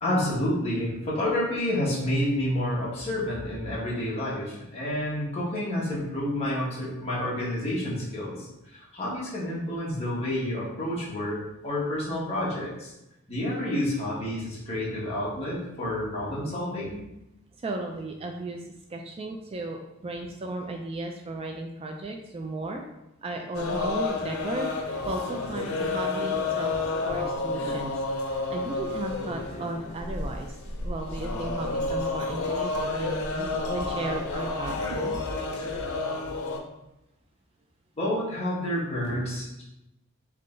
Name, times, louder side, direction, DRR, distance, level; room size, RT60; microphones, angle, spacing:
voice 1, 0.0-12.9 13.3-17.0 38.0-39.6, left 1 dB, 30° left, -7 dB, 1.4 m, -29 dB
voice 2, 17.6-22.8 23.2-26.7 27.0-27.9 28.2-35.2, right 2 dB, 25° right, 3 dB, 0.3 m, -35 dB
sound 1, 23.5-36.6, left 3 dB, 85° left, 0.6 m, -30 dB
3.7 x 3.2 x 3.8 m, 0.90 s
head